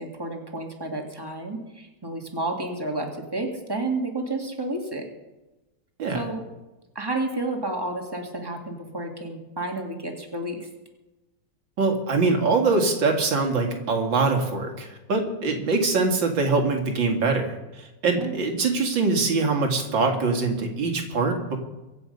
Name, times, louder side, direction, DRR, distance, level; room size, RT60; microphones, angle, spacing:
voice 1, 0.0-5.1 6.1-6.4 7.0-10.7 18.2-18.4, right 2 dB, 15° right, 2 dB, 2.1 m, -31 dB
voice 2, 11.8-21.6, right 3 dB, 85° right, 3 dB, 2.9 m, -23 dB
23.5 x 8.3 x 5.4 m, 1.1 s
omnidirectional pair, 2.0 m